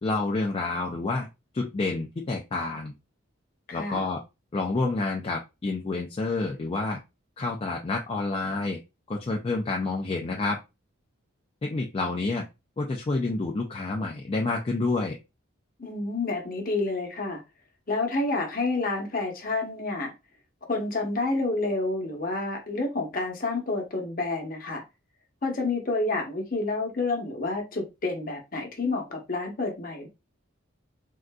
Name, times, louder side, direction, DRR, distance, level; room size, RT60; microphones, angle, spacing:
voice 1, 0.0-1.3 1.5-2.9 3.7-4.2 4.5-7.0 7.4-8.8 9.1-10.6 11.6-12.4 12.8-15.2, left 3 dB, 25° left, 0.3 m, -28 dB
voice 2, 3.7-4.0 15.8-17.4 17.9-20.1 20.7-24.8 25.4-30.1, left 3 dB, 45° left, 0.8 m, -29 dB
3.7 x 2.4 x 2.2 m
head